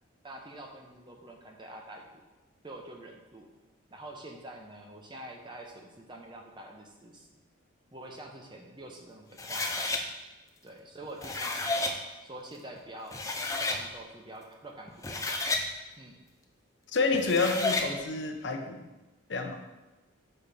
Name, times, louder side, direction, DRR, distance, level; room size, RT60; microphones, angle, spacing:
voice 1, 0.2-2.2 2.6-3.5 3.9-7.4 7.9-10.0 10.6-12.0 12.2-13.2 13.6-15.4 16.0-16.2, right 1 dB, 20° right, 1 dB, 0.8 m, -46 dB
sound 1, 9.4-10.0 11.0-11.9 12.8-12.9 13.1-13.8 14.9-15.7 17.1-17.9, left 2 dB, 15° left, 0.5 m, -31 dB
voice 2, 16.9-18.8 19.3-19.6, left 3 dB, 55° left, 5 dB, 0.7 m, -28 dB
6.5 x 4.3 x 5.1 m, 1.1 s
head